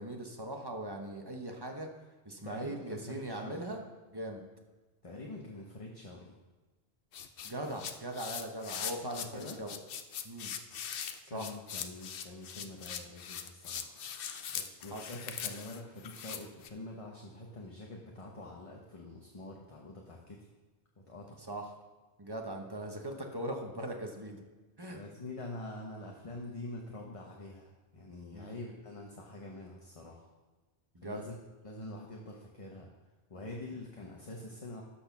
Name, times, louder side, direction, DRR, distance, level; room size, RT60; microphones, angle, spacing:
voice 1, 0.0-1.9 2.2-3.8 4.1-4.4 7.4-9.8 10.2-10.5 11.3-11.4 14.9-15.1 21.5-21.6 22.2-24.4 24.8-25.0 28.3-28.6 30.9-31.2, right 1 dB, 25° right, 2 dB, 1.0 m, -40 dB
voice 2, 2.4-3.6 5.0-6.4 9.0-9.6 11.3-14.0 14.5-20.5 21.0-21.4 24.9-30.2 31.0-31.4 31.6-32.9 33.3-34.8, left 2 dB, 30° left, -1 dB, 1.0 m, -45 dB
sound 1, 7.1-16.7, left 8 dB, 60° left, 0.8 m, -41 dB
12.5 x 4.3 x 5.9 m, 1.3 s
omnidirectional pair, 1.1 m